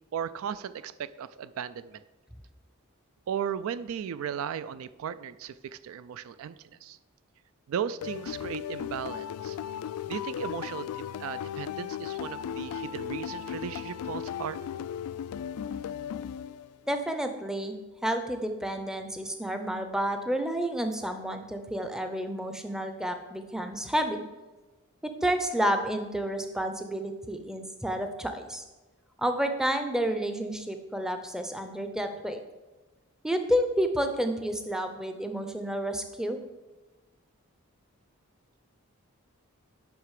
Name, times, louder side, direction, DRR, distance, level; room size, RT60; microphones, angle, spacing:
voice 1, 0.1-2.0 3.3-6.6 6.8-7.0 7.7-9.6 10.1-14.6, right 8 dB, 70° right, 15 dB, 0.3 m, -36 dB
sound 1, 8.0-16.9, left 9 dB, 90° left, 0.3 m, -36 dB
voice 2, 16.9-17.8 18.0-24.2 25.2-28.6 29.2-32.4 33.2-36.4, equal, 5° right, 7 dB, 0.5 m, -30 dB
9.6 x 5.9 x 4.8 m, 1.2 s
head